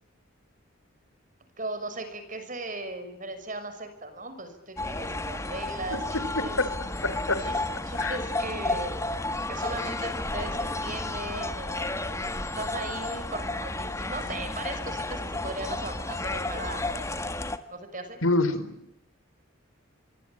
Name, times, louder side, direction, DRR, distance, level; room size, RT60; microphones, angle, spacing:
voice 1, 1.6-6.6 7.4-7.6 7.8-9.0 9.5-12.2 12.6-18.2, right 2 dB, 40° right, 9 dB, 5.9 m, -38 dB
sound 1, 4.8-17.6, left 2 dB, 15° left, 1.6 m, -32 dB
voice 2, 6.4-6.7 7.0-7.4 8.0-8.2 18.2-18.9, left 2 dB, 80° left, 12 dB, 4.1 m, -26 dB
26.0 x 24.0 x 8.7 m, 0.80 s
head